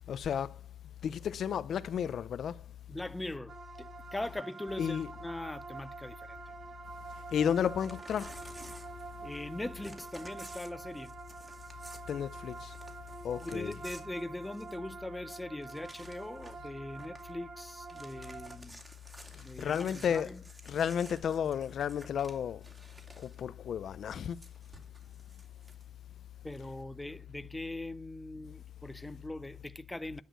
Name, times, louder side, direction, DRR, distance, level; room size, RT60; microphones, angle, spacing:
voice 1, 0.1-0.6 1.0-2.6 4.8-5.1 7.3-8.4 12.1-12.7 13.2-13.7 19.3-20.3 20.7-22.6 23.2-24.4, left 8 dB, 65° left, 0.6 m, -32 dB
voice 2, 2.9-6.4 9.2-11.1 13.4-18.8 19.3-20.4 26.4-30.2, left 1 dB, 10° left, 0.5 m, -41 dB
sound 1, 3.5-18.6, right 4 dB, 45° right, 1.6 m, -47 dB
Crumpling crinkling / Tearing, 7.4-9.5 9.8-14.9 15.3-15.4 15.6-16.7 16.9-17.3 17.7-23.4 24.2-25.8, right 1 dB, 20° right, 2.7 m, -54 dB
10.5 x 6.5 x 8.9 m
cardioid pair, 120°, 0 cm